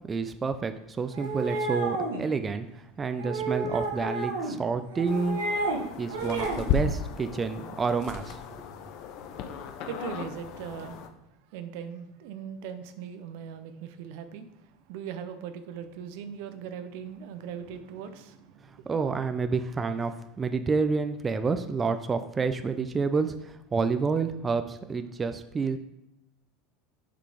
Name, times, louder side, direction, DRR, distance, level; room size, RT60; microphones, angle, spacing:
voice 1, 0.1-5.4 6.0-8.4 18.9-25.8, right 4 dB, 25° right, 9 dB, 0.5 m, -29 dB
sound 1, 1.1-2.2 3.2-4.5 4.9-5.8 6.1-6.6, right 3 dB, 85° right, 1.2 m, -31 dB
sound 2, 5.1-11.1, left 6 dB, 60° left, 0.7 m, -35 dB
voice 2, 9.5-11.1 11.5-18.9, right 8 dB, 65° right, 10 dB, 0.6 m, -40 dB
6.7 x 3.8 x 4.9 m, 0.87 s
hypercardioid pair, 90°, 0 cm